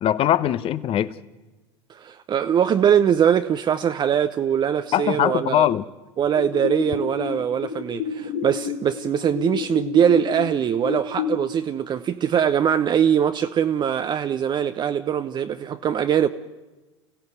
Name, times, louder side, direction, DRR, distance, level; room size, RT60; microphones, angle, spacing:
voice 1, 0.0-1.2 4.9-5.8, left 11 dB, 40° left, 1.1 m, -21 dB
voice 2, 1.9-5.7 6.2-16.3, right 8 dB, 30° right, 0.8 m, -22 dB
sound 1, 6.4-11.4, left 7 dB, 55° left, 3.1 m, -30 dB
29.5 x 15.5 x 8.2 m
hypercardioid pair, 85°, 15 cm